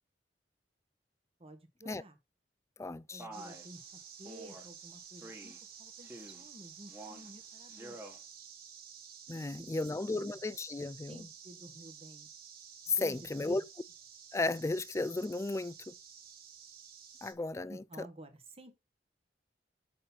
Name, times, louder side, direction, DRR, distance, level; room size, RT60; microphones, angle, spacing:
voice 1, 1.4-2.2 3.1-3.9 4.2-8.0 9.3-10.2 11.1-12.3 12.9-13.6 17.7-18.7, right 1 dB, 35° right, 1.5 m, -52 dB
voice 2, 2.8-3.2 9.3-11.3 12.8-13.6 14.3-15.9 17.2-18.1, left 3 dB, 15° left, 0.3 m, -34 dB
Male speech man speaking, 3.2-3.7 4.3-4.7 5.2-5.6 6.0-6.5 6.9-7.3 7.7-8.2, right 1 dB, 10° right, 1.6 m, -48 dB
sound 1, 3.3-17.3, right 7 dB, 60° right, 2.1 m, -52 dB
6.5 x 5.7 x 4.1 m
head